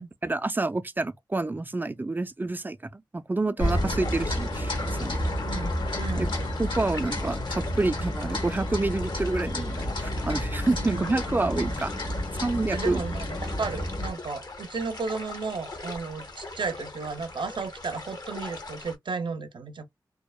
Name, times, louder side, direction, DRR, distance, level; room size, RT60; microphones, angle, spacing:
voice 1, 0.2-5.2 6.2-6.3 6.6-11.9 12.4-13.0, right 2 dB, 25° right, 0.4 m, -28 dB
sound 1, 3.6-14.1, left 1 dB, 70° left, 1.1 m, -30 dB
sound 2, 3.6-19.0, left 2 dB, 55° left, 0.7 m, -41 dB
voice 2, 6.0-6.4 10.8-11.1 11.4-11.5 12.7-19.9, right 4 dB, 70° right, 0.5 m, -34 dB
2.7 x 2.0 x 2.3 m
cardioid pair, 50°, 8 cm